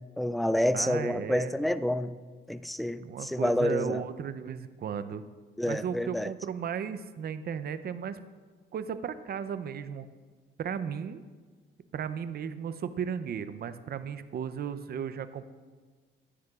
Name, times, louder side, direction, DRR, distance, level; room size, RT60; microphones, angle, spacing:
voice 1, 0.2-2.1 2.5-4.0 5.6-6.3, left 1 dB, ahead, 13 dB, 0.3 m, -28 dB
voice 2, 0.7-1.5 3.0-5.2 5.7-8.2 8.7-10.1 10.6-11.2 11.9-15.4, right 7 dB, 50° right, 12 dB, 0.6 m, -35 dB
13.5 x 9.5 x 2.4 m, 1.5 s
cardioid pair, 90°, 20 cm